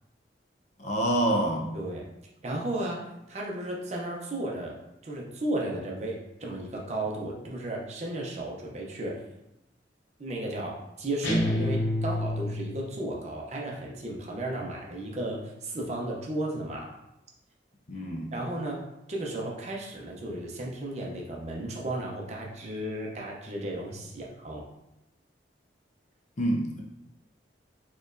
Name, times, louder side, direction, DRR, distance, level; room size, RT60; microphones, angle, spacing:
voice 1, 0.8-1.7 17.9-18.3 26.4-26.8, right 1 dB, 40° left, 0 dB, 0.5 m, -27 dB
voice 2, 1.7-2.1 2.4-3.0 3.3-4.7 5.0-9.2 10.2-16.9 18.3-24.6, right 1 dB, 35° right, -1 dB, 0.6 m, -34 dB
sound 1, 11.2-12.9, left 1 dB, 80° left, 0.8 m, -28 dB
4.2 x 3.0 x 2.5 m, 0.90 s
head